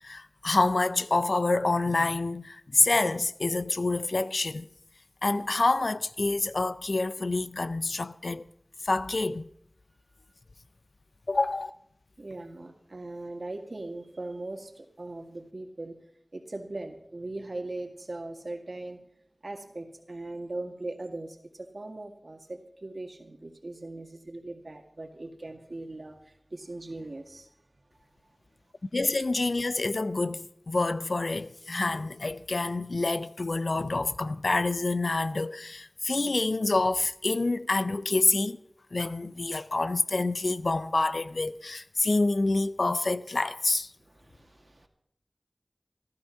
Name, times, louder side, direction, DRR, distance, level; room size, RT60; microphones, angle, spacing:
voice 1, 0.0-4.7 5.2-8.5 8.8-9.5 11.3-11.7 28.9-38.6 38.9-43.9, left 2 dB, 85° left, 0.5 m, -27 dB
voice 2, 12.2-16.0 16.3-19.0 19.4-27.5 44.0-44.9, right 2 dB, 75° right, 2.0 m, -40 dB
15.0 x 12.5 x 5.7 m
wide cardioid pair, 40°, 0 cm